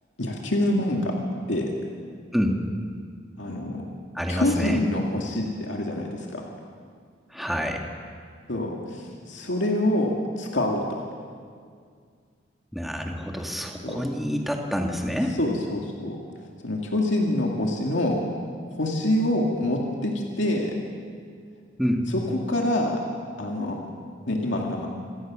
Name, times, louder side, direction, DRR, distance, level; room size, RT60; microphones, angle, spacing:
voice 1, 0.2-1.2 1.5-1.7 3.4-3.9 4.3-6.5 8.5-11.0 13.8-14.0 15.4-16.2 16.6-18.3 18.7-20.8 22.1-23.0 23.4-23.8 24.3-24.9, left 1 dB, 90° left, 0 dB, 2.3 m, -26 dB
voice 2, 4.1-4.8 7.3-7.8 12.7-15.4 21.8-22.1, equal, ahead, 1 dB, 1.8 m, -27 dB
27.0 x 17.5 x 6.2 m, 2.1 s
head